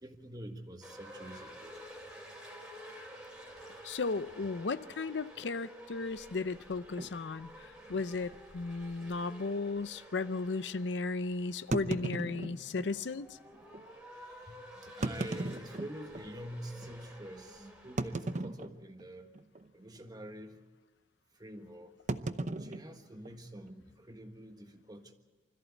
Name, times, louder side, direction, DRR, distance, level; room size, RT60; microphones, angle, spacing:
voice 1, 0.0-1.8 13.5-13.7 14.3-19.3 19.7-20.6 21.4-22.0 22.5-25.1, right 1 dB, 20° right, 6 dB, 1.5 m, -47 dB
sound 1, 0.8-18.4, equal, 5° right, 3.0 m, -51 dB
voice 2, 3.8-7.5 7.9-13.3, left 3 dB, 75° left, 14 dB, 0.6 m, -35 dB
sound 2, 7.0-7.2 7.9-8.0 8.3-8.4 9.0-9.1 11.7-12.9 13.7-13.8 14.9-16.3 16.8-16.9 18.0-19.1 19.3-19.7 20.0-20.3 22.1-23.7, right 2 dB, 40° right, 0.8 m, -37 dB
25.5 x 14.5 x 8.4 m, 1.2 s
head